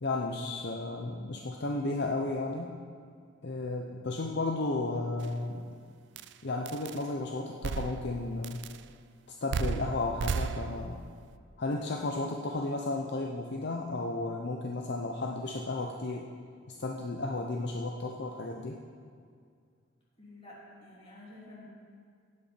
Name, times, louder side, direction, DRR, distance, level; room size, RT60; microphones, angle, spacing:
voice 1, 0.0-2.8 3.4-5.8 6.4-8.6 9.3-11.0 11.6-16.3 16.8-18.8, left 2 dB, 55° left, 1 dB, 0.7 m, -33 dB
sound 1, 5.2-5.3 6.2-6.3 6.7-7.0 7.6-8.2 8.4-8.8 9.5-11.0, right 5 dB, 60° right, 0.4 m, -34 dB
voice 2, 20.2-21.7, left 2 dB, 30° left, -5 dB, 2.9 m, -50 dB
16.0 x 8.5 x 4.4 m, 2.2 s
head